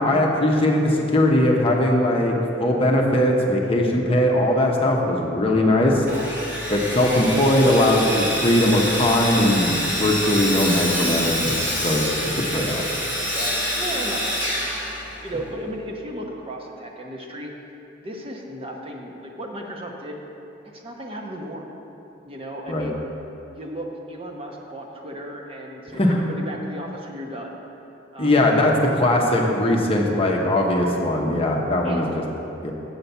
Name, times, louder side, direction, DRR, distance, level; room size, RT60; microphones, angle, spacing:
voice 1, 0.0-6.0 6.7-12.0 12.4-12.8 22.7-22.9 25.9-26.2 28.2-32.0 32.6-32.7, left 1 dB, 30° left, 0 dB, 0.8 m, -20 dB
Sawing, 6.1-15.5, equal, 10° right, 1.6 m, -26 dB
voice 2, 13.3-14.6 14.9-17.5 18.0-20.2 20.6-21.7 22.2-23.0 23.5-27.6 28.1-28.4 31.8-32.1, right 1 dB, 30° right, -1 dB, 0.9 m, -35 dB
8.0 x 5.8 x 6.8 m, 2.9 s
head